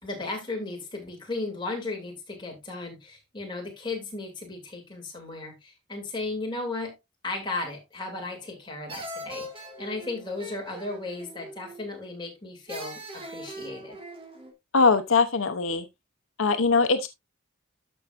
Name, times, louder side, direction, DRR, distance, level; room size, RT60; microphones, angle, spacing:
voice 1, 0.0-6.9 7.2-14.0, left 2 dB, 25° left, 2.9 m, -35 dB
sound 1, 8.1-8.6 8.9-12.0 12.7-14.5, right 1 dB, 25° right, 1.7 m, -41 dB
voice 2, 14.7-15.8 16.4-17.1, left 4 dB, 85° left, 0.8 m, -21 dB
13.0 x 5.5 x 2.5 m
head